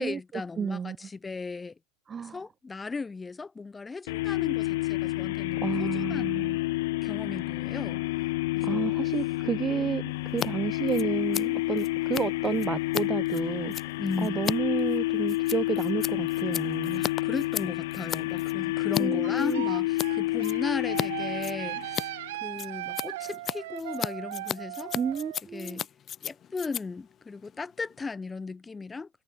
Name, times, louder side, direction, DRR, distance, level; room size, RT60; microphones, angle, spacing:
voice 1, 0.0-1.8 2.2-6.4 7.0-8.0 8.5-8.9 14.0-14.6 16.9-22.1 22.4-24.9 25.5-25.8 26.2-29.1, left 4 dB, 15° left, 3.8 m, -36 dB
voice 2, 0.6-1.0 2.1-2.4 5.6-6.6 8.6-13.9 14.2-17.0 19.0-19.7 24.9-25.8, right 6 dB, 25° right, 1.1 m, -31 dB
sound 1, 4.1-22.3, left 19 dB, 75° left, 2.4 m, -29 dB
Scissors, 10.3-10.5 10.7-19.0 19.4-20.1 20.4-21.1 21.3-28.1, left 9 dB, 35° left, 4.3 m, -36 dB
sound 2, 19.2-25.4, right 17 dB, 75° right, 4.6 m, -38 dB
hypercardioid pair, 105°, 0 cm